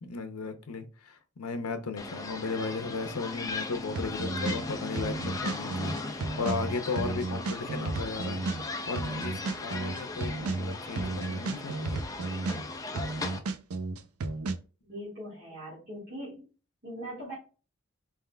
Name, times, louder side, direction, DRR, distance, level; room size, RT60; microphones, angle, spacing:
voice 1, 0.0-8.4 8.9-12.0, left 4 dB, 90° left, 0.7 m, -36 dB
sound 1, 2.0-13.4, left 3 dB, 15° left, 0.3 m, -38 dB
sound 2, 3.9-4.6 5.0-8.6 9.0-12.6 13.0-14.6, right 3 dB, 80° right, 0.5 m, -33 dB
voice 2, 14.8-16.5 16.8-17.3, equal, 45° right, 1.7 m, -41 dB
4.3 x 3.6 x 2.2 m
head